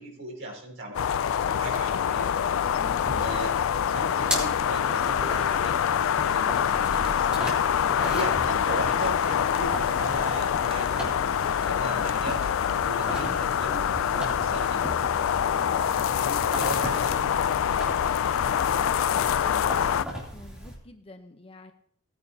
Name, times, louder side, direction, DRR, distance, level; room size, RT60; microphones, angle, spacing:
voice 1, 0.0-2.3 3.0-3.6 3.9-11.1 11.7-12.4 12.8-13.9 14.1-14.9 15.4-17.3, right 1 dB, 55° right, -2 dB, 5.2 m, -37 dB
sound 1, 0.9-20.0, left 8 dB, 65° left, 0.3 m, -25 dB
sound 2, 1.5-1.8 2.8-2.9 3.7-3.8 4.2-17.7, right 2 dB, 25° right, 0.5 m, -47 dB
sound 3, 2.6-20.7, equal, 5° right, 2.9 m, -39 dB
voice 2, 2.7-3.1 11.7-12.3 18.5-21.7, left 1 dB, 25° left, 6 dB, 0.8 m, -46 dB
17.0 x 9.7 x 2.8 m, 0.62 s
head